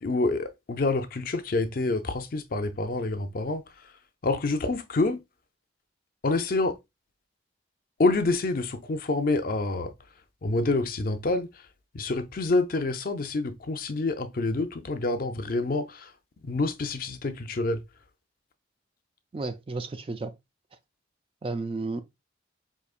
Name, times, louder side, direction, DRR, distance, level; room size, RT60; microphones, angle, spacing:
voice 1, 0.0-3.9 4.2-5.2 6.2-6.8 8.0-9.9 10.4-11.6 11.9-16.1 16.4-17.8, left 3 dB, 50° left, 0.5 m, -27 dB
voice 2, 19.3-20.3 21.4-22.0, right 3 dB, 30° right, 0.3 m, -32 dB
4.8 x 2.9 x 2.4 m
head